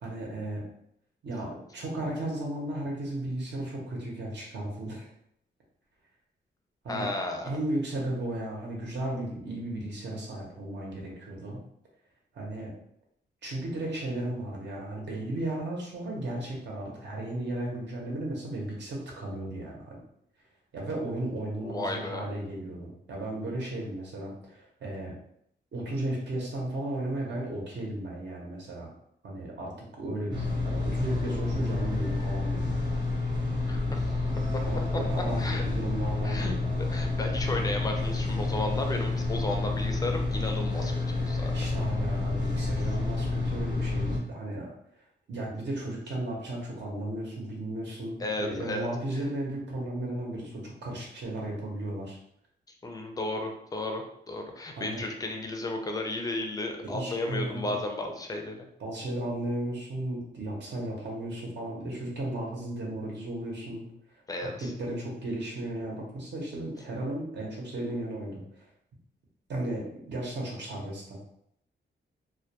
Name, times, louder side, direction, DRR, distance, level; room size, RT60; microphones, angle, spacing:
voice 1, 0.0-0.6 1.2-5.1 6.8-7.1 7.4-11.6 12.3-12.7 13.4-20.0 20.7-25.1 25.7-28.9 29.2-29.7 30.0-32.7 34.6-36.6 41.5-44.7 45.3-52.2 54.7-55.0 56.8-57.8 58.8-64.2 64.6-68.7 69.5-71.2, right 1 dB, 75° right, -2 dB, 0.7 m, -35 dB
voice 2, 6.9-7.5 21.6-22.2 33.7-34.0 35.4-35.6 36.2-36.5 36.9-41.5 48.2-48.9 52.8-58.7 64.3-64.7, left 2 dB, 20° left, 3 dB, 0.4 m, -34 dB
sound 1, 30.3-44.2, left 3 dB, 25° right, 0.7 m, -29 dB
2.2 x 2.1 x 2.8 m, 0.72 s
wide cardioid pair, 140°, 19 cm